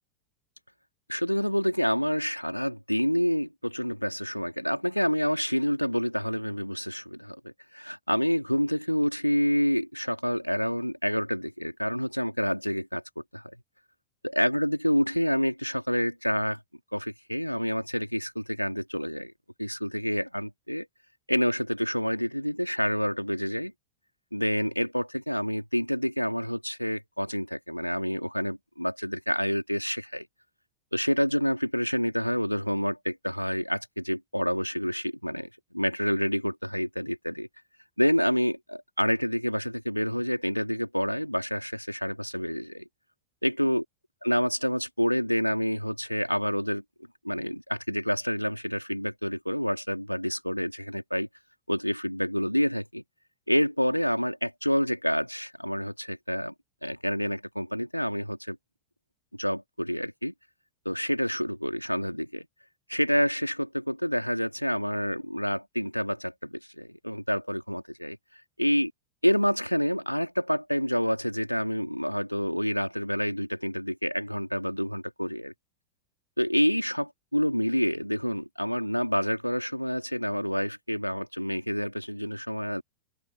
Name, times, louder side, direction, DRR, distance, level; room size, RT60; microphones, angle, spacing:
voice 1, 1.1-13.0 13.3-13.5 14.2-16.6 16.9-19.3 19.6-20.9 21.3-23.7 24.3-30.3 30.9-37.5 38.0-42.8 43.4-43.8 44.2-46.8 47.2-51.3 51.7-53.0 53.5-56.5 56.8-58.6 59.4-60.3 60.8-62.5 62.9-68.2 68.6-68.9 69.2-75.5 76.4-82.8, equal, 90° left, 3.1 m, -28 dB
open air
figure-of-eight pair, 90°, 0 cm